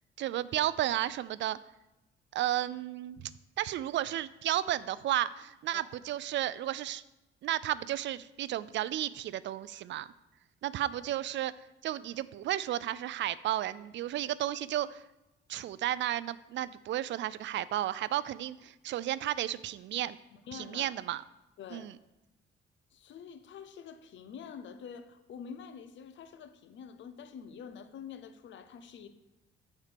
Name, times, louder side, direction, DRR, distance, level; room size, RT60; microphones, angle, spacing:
voice 1, 0.2-1.6 2.3-7.0 7.4-10.1 10.6-11.5 11.8-15.0 15.5-20.2 20.5-21.2 21.7-21.9, right 13 dB, 70° right, 18 dB, 0.4 m, -33 dB
voice 2, 20.3-21.0 21.6-21.9 22.9-29.1, left 7 dB, 70° left, 10 dB, 0.9 m, -47 dB
8.9 x 4.3 x 6.9 m, 0.96 s
cardioid pair, 90°, 20 cm